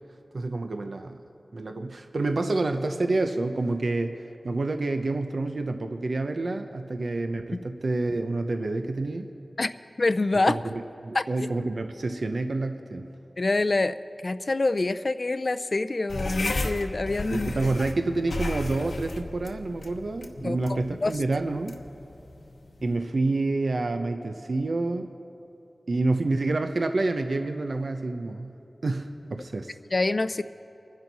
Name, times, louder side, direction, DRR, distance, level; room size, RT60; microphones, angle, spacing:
voice 1, 0.3-1.2 1.5-9.3 10.5-13.1 17.3-21.8 22.8-25.1 25.9-28.5 28.8-29.7, right 2 dB, 75° right, 7 dB, 0.7 m, -28 dB
voice 2, 10.0-10.6 11.1-11.2 13.4-14.0 14.2-17.5 20.4-21.1 29.9-30.4, left 2 dB, 55° left, 13 dB, 0.4 m, -26 dB
sound 1, 16.1-23.0, left 2 dB, 80° left, 1.0 m, -34 dB
25.0 x 10.5 x 4.1 m, 3.0 s
wide cardioid pair, 55°, 0 cm